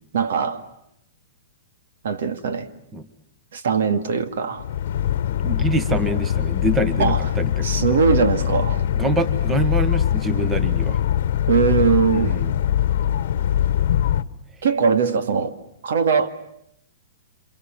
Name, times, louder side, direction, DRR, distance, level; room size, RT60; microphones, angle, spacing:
voice 1, 0.1-0.7 2.0-2.7 3.5-4.7 7.0-7.3 7.6-8.9 11.5-12.3 14.6-15.5 15.8-16.3, right 6 dB, 75° right, 2.1 m, -21 dB
sound 1, 4.6-14.2, left 10 dB, 60° left, 1.1 m, -22 dB
voice 2, 5.4-7.9 9.0-11.0 12.1-12.5, right 1 dB, 10° right, 1.3 m, -25 dB
28.5 x 26.5 x 7.5 m
hypercardioid pair, 160°, 0 cm